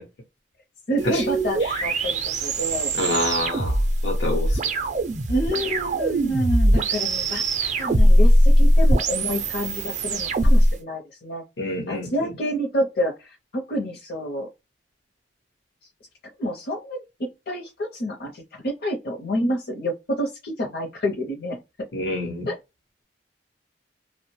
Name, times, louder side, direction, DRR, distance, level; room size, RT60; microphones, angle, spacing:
voice 1, 0.9-2.9 5.3-11.4 11.9-14.5 16.4-21.6 22.5-22.6, equal, 60° left, 0.6 m, -28 dB
sound 1, 1.0-10.7, right 1 dB, 40° right, 0.4 m, -20 dB
voice 2, 3.0-4.6 11.6-12.1 21.9-22.5, left 1 dB, 90° left, 0.8 m, -27 dB
2.8 x 2.1 x 3.0 m
head